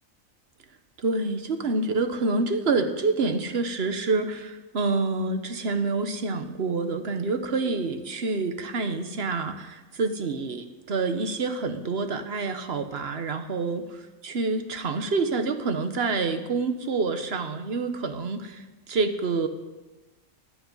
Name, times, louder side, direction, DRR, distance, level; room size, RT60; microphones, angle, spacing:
voice 1, 1.0-19.5, right 3 dB, 50° right, 8 dB, 1.3 m, -27 dB
16.5 x 10.5 x 5.5 m, 1.1 s
omnidirectional pair, 1.4 m